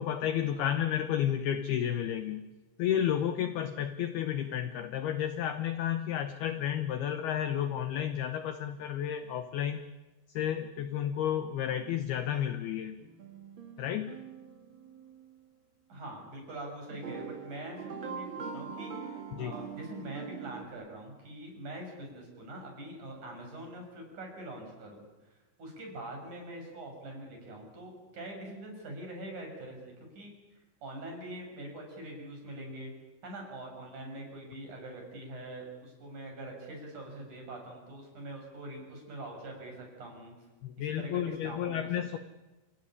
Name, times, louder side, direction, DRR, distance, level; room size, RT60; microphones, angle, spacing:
voice 1, 0.0-2.5 2.8-9.8 10.4-13.0 13.8-14.2 19.3-19.6 40.6-42.2, left 10 dB, 75° left, 9 dB, 2.4 m, -31 dB
sound 1, 13.0-15.4 16.9-20.6, right 6 dB, 55° right, 1.3 m, -43 dB
voice 2, 15.9-25.1 25.6-30.3 30.8-32.9 33.2-40.3 40.8-41.9, right 1 dB, 40° right, 1 dB, 7.5 m, -44 dB
30.0 x 16.0 x 10.0 m, 1.1 s
omnidirectional pair, 5.7 m